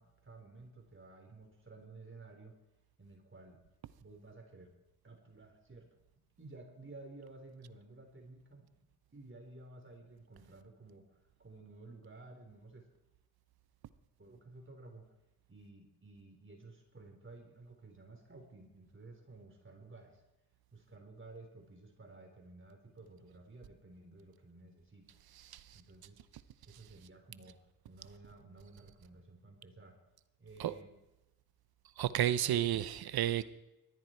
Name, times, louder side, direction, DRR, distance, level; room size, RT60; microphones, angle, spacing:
voice 1, 0.0-2.6 3.0-3.7 4.0-4.7 5.0-6.0 6.4-8.7 9.1-12.9 14.2-15.1 15.5-20.2 20.7-25.1 25.7-26.3 26.6-30.0 30.4-30.9 32.2-32.7, right 2 dB, 35° right, 3 dB, 4.1 m, -54 dB
voice 2, 25.3-25.8 30.6-30.7 32.0-33.4, right 11 dB, 80° right, 15 dB, 0.9 m, -32 dB
19.0 x 13.5 x 4.6 m, 0.93 s
cardioid pair, 55°, 37 cm